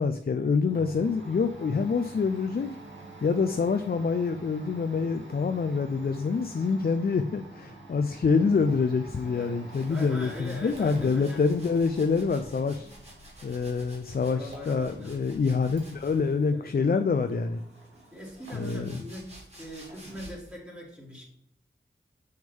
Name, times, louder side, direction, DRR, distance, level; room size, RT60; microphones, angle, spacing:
voice 1, 0.0-2.7 3.2-12.9 13.4-17.6 18.5-19.0, left 5 dB, 55° left, 7 dB, 0.5 m, -26 dB
Domestic sounds home sounds, 0.7-19.0 19.3-20.3, right 2 dB, 80° right, 2.2 m, -48 dB
sound 1, 9.7-16.5 17.3-20.5, right 1 dB, 35° right, 2.6 m, -51 dB
voice 2, 9.9-11.4 14.3-15.2 16.5-16.7 18.1-19.3 19.5-21.2, equal, 10° right, -6 dB, 3.1 m, -41 dB
7.2 x 6.3 x 3.5 m, 0.70 s
wide cardioid pair, 65°, 19 cm